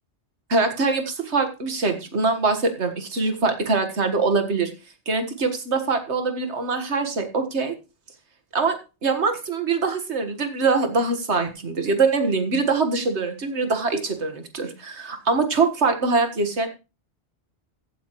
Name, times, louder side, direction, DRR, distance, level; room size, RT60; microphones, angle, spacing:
voice 1, 0.5-4.7 5.1-7.7 8.5-16.7, right 4 dB, 70° right, 7 dB, 2.0 m, -23 dB
15.5 x 8.1 x 3.1 m, 0.29 s
omnidirectional pair, 1.2 m